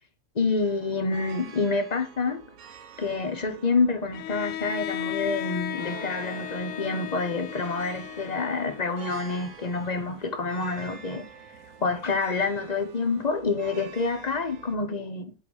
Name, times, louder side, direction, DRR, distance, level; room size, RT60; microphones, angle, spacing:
voice 1, 0.3-2.4 3.0-11.3 11.8-15.3, left 4 dB, 35° left, 0.8 m, -27 dB
sound 1, 0.6-14.8, right 6 dB, 70° right, 1.3 m, -47 dB
Bowed string instrument, 4.1-9.1, left 12 dB, 70° left, 0.8 m, -35 dB
7.9 x 4.1 x 6.2 m
omnidirectional pair, 1.6 m